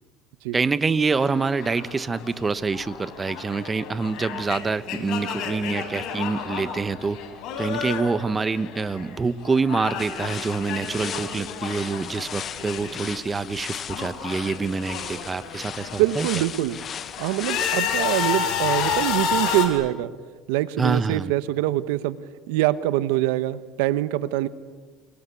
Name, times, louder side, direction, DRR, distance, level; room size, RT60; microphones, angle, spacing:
voice 1, 0.5-7.2 7.6-16.3 20.8-21.3, right 4 dB, 20° right, 15 dB, 1.1 m, -26 dB
sound 1, 1.1-9.2 9.4-13.2 13.4-16.1 16.6-19.7, left 7 dB, 65° left, 6.1 m, -31 dB
sound 2, 10.0-18.5, left 8 dB, 40° left, 1.2 m, -37 dB
voice 2, 16.0-16.8 17.2-20.1 20.5-22.2 22.5-24.5, right 15 dB, 90° right, 15 dB, 1.1 m, -24 dB
29.0 x 22.5 x 8.4 m, 1.4 s
supercardioid pair, 105°, 0 cm